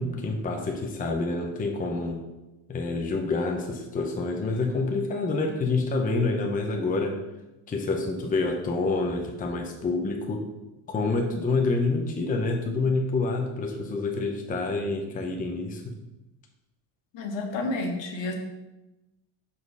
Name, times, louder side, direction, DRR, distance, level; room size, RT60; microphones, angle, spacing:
voice 1, 0.0-2.2 2.7-7.2 7.7-10.5 10.9-15.9, left 3 dB, 20° left, 2 dB, 0.7 m, -27 dB
voice 2, 17.1-18.3, left 2 dB, 65° left, 2 dB, 1.4 m, -30 dB
5.1 x 4.1 x 4.8 m, 1.0 s
cardioid pair, 110°, 47 cm